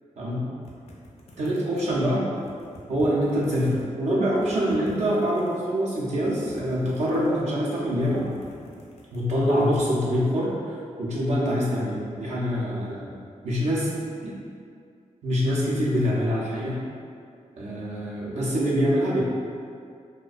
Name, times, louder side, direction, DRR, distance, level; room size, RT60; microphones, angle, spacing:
voice 1, 0.2-0.5 1.4-2.3 2.9-8.2 9.1-13.2 13.4-13.9 14.2-14.4 15.2-16.8 17.6-19.2, equal, 65° right, -6 dB, 0.6 m, -25 dB
sound 1, 0.6-2.0 2.4-3.8 4.2-5.6 6.1-7.5 7.8-9.7, left 1 dB, 55° left, 0.4 m, -47 dB
2.3 x 2.1 x 2.5 m, 2.3 s
wide cardioid pair, 140°, 13 cm